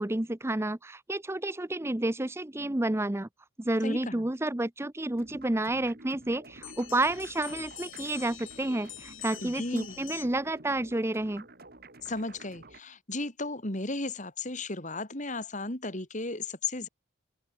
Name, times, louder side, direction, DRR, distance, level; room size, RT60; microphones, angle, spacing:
voice 1, 0.0-3.3 3.6-11.5, right 1 dB, 15° right, 0.6 m, -30 dB
voice 2, 3.8-4.3 9.4-10.0 12.0-16.9, left 2 dB, 35° left, 3.8 m, -35 dB
sound 1, 5.1-12.8, right 2 dB, 50° right, 6.7 m, -51 dB
sound 2, 6.6-10.5, left 14 dB, 75° left, 2.9 m, -45 dB
open air
head